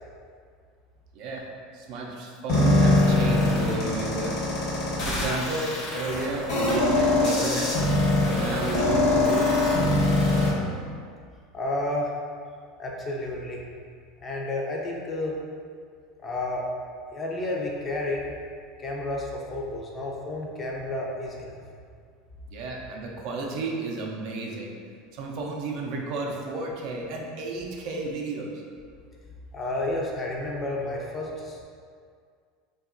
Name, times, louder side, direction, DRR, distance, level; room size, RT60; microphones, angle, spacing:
voice 1, 1.7-4.4 5.1-7.9 8.2-9.6 22.5-24.7 25.1-28.5, right 3 dB, 60° right, 0 dB, 0.4 m, -32 dB
sound 1, 2.5-10.5, left 2 dB, 60° left, 1.0 m, -22 dB
voice 2, 11.5-12.1 12.8-13.6 14.2-15.4 16.2-16.6 17.1-18.3 18.8-21.6 29.5-31.6, left 2 dB, 25° left, -2 dB, 0.4 m, -31 dB
2.7 x 2.3 x 2.4 m, 2.1 s
supercardioid pair, 110°, 0 cm